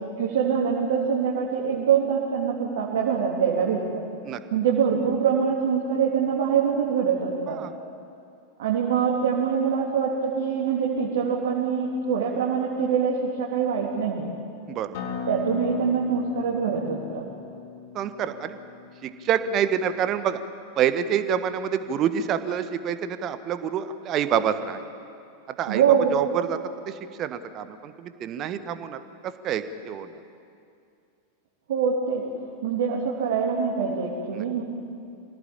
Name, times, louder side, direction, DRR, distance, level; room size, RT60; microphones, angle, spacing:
voice 1, 0.2-4.0 4.5-7.6 8.6-14.3 15.3-17.2 25.7-26.2 31.7-32.2 32.6-34.6, right 7 dB, 55° right, -3 dB, 3.4 m, -24 dB
Acoustic guitar, 14.9-20.1, left 6 dB, 50° left, 3.5 m, -36 dB
voice 2, 17.9-18.6 19.0-20.4 20.8-24.9 25.6-25.8 26.1-26.6 26.9-30.1 34.3-34.4, right 8 dB, 35° right, 11 dB, 1.4 m, -27 dB
25.5 x 18.0 x 8.8 m, 2.4 s
figure-of-eight pair, 90°, 0 cm